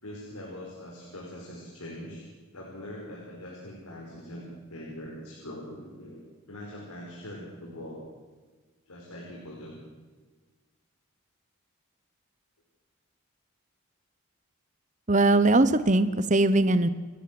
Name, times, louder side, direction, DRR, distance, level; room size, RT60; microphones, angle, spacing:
voice 1, 0.0-2.2 2.5-4.4 4.7-8.0 8.9-9.8, left 1 dB, 90° left, -2 dB, 5.3 m, -42 dB
voice 2, 15.1-16.9, right 2 dB, 35° right, 13 dB, 0.9 m, -21 dB
28.5 x 14.0 x 7.7 m, 1.4 s
head